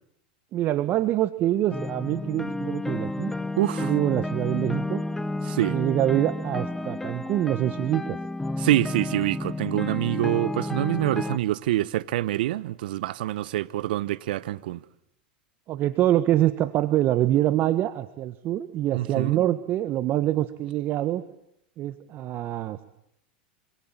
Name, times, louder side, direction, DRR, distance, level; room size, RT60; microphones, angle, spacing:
voice 1, 0.5-3.3 3.8-5.0 5.6-8.2 15.7-21.2 21.8-22.8, right 13 dB, 40° right, 1.5 m, -25 dB
sound 1, 1.7-11.4, left 2 dB, 5° left, 1.0 m, -31 dB
voice 2, 3.6-3.9 5.4-5.8 8.6-14.8 18.9-19.4, right 15 dB, 75° right, 1.0 m, -26 dB
27.5 x 26.5 x 7.5 m
hypercardioid pair, 115°, 5 cm